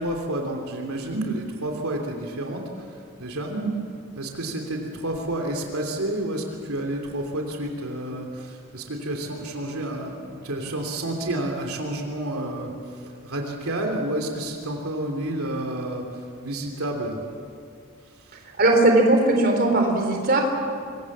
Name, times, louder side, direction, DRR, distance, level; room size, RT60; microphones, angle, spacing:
voice 1, 0.0-3.5 4.1-12.7 13.0-17.2, right 1 dB, 80° right, 2 dB, 3.0 m, -30 dB
voice 2, 18.6-20.4, right 2 dB, 45° right, 2 dB, 3.8 m, -19 dB
26.0 x 22.5 x 7.4 m, 2.3 s
head